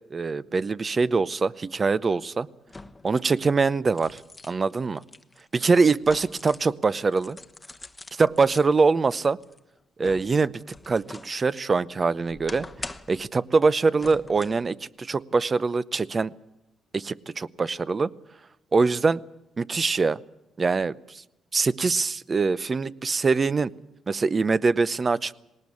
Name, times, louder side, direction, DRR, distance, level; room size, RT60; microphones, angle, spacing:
voice 1, 0.0-2.5 3.0-4.2 4.5-5.0 5.5-7.4 8.2-9.4 10.0-12.7 13.1-16.3 16.9-18.1 18.7-19.2 19.6-20.2 20.6-21.2 21.5-23.7 24.1-25.3, right 4 dB, 35° right, 18 dB, 0.7 m, -23 dB
sound 1, 1.4-1.5 2.7-3.2 3.6-6.8 7.1-8.7 9.2-11.4 11.8-13.3 14.0-14.7 15.1-15.2, left 2 dB, 20° left, 1.0 m, -43 dB
19.0 x 18.5 x 8.5 m, 0.88 s
cardioid pair, 90°, 0 cm